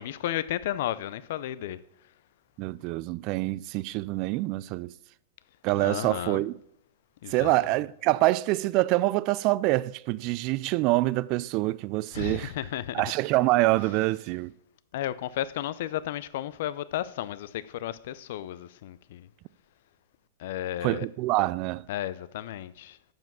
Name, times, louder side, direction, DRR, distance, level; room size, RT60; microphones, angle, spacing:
voice 1, 0.0-1.8 5.8-6.4 7.2-7.5 12.1-13.0 14.9-19.3 20.4-21.1 21.9-23.0, left 12 dB, 65° left, 0.5 m, -33 dB
voice 2, 2.6-4.9 5.6-6.5 7.3-12.5 12.9-14.5 20.8-21.9, right 19 dB, 45° right, 0.3 m, -26 dB
7.1 x 5.8 x 7.3 m
hypercardioid pair, 110°, 0 cm